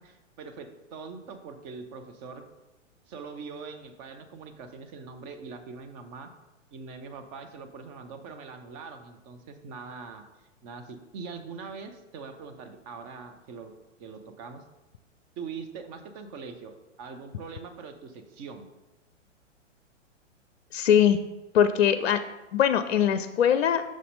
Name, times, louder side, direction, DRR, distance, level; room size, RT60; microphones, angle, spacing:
voice 1, 0.0-2.4 3.1-6.3 6.7-10.2 10.6-13.7 14.0-14.6 15.4-16.7 17.0-18.7, right 5 dB, 25° right, 7 dB, 0.7 m, -42 dB
voice 2, 20.7-21.2 21.5-22.2 22.5-23.8, left 9 dB, 55° left, 10 dB, 0.5 m, -21 dB
6.2 x 4.2 x 5.1 m, 1.0 s
figure-of-eight pair, 110°, 37 cm